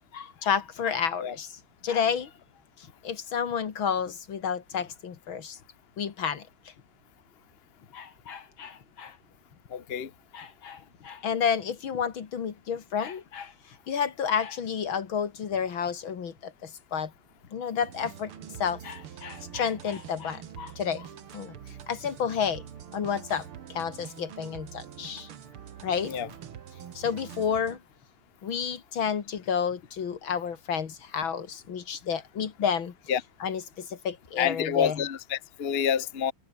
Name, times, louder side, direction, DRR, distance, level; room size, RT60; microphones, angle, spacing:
voice 1, 0.1-2.3 3.0-5.6 6.0-6.5 7.9-9.2 10.3-13.5 13.9-17.1 17.5-18.3 18.6-21.1 21.3-21.6 21.9-22.6 22.9-25.3 25.8-26.1 26.9-27.8 28.4-32.9 33.4-35.0, left 7 dB, 70° left, 2.6 m, -30 dB
voice 2, 9.7-10.1 26.1-26.3 33.1-33.2 34.4-36.3, left 8 dB, 35° left, 1.3 m, -28 dB
sound 1, 17.8-27.8, right 9 dB, 85° right, 2.3 m, -45 dB
omnidirectional pair, 2.3 m